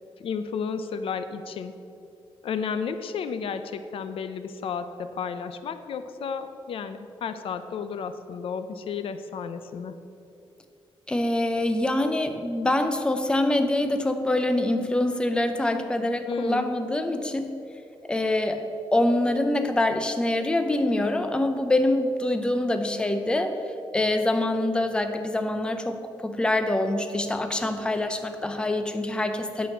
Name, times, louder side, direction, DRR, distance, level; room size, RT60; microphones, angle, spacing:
voice 1, 0.2-1.7 2.4-9.9 16.3-16.7, left 6 dB, 70° left, 10 dB, 0.6 m, -32 dB
voice 2, 11.1-17.6 18.0-23.6 23.9-29.7, left 1 dB, 10° left, 7 dB, 0.6 m, -25 dB
9.4 x 6.3 x 7.2 m, 2.6 s
wide cardioid pair, 160°, 10 cm